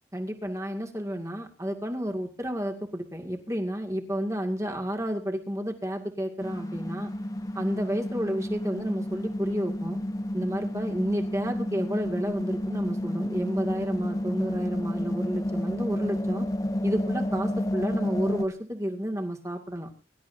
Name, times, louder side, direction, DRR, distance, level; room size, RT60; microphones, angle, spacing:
voice 1, 0.1-7.1 7.5-10.0 10.3-16.5 16.8-19.9, equal, 15° right, 3 dB, 2.2 m, -31 dB
sound 1, 6.4-18.4, left 1 dB, 20° left, 1.0 m, -30 dB
23.5 x 12.5 x 2.7 m, 0.32 s
head